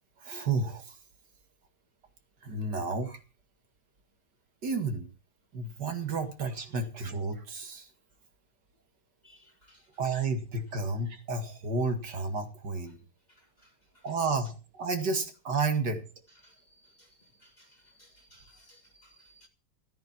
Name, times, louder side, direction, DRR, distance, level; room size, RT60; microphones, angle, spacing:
voice 1, 0.2-0.9 2.4-3.2 4.6-5.1 5.5-7.9 10.0-13.0 14.0-16.0, right 3 dB, 75° right, 2.7 m, -31 dB
voice 2, 9.2-9.8 16.4-16.5 17.0-17.1 17.4-17.7 18.0-19.5, equal, 25° left, 1.6 m, -60 dB
14.0 x 9.0 x 5.9 m
omnidirectional pair, 1.9 m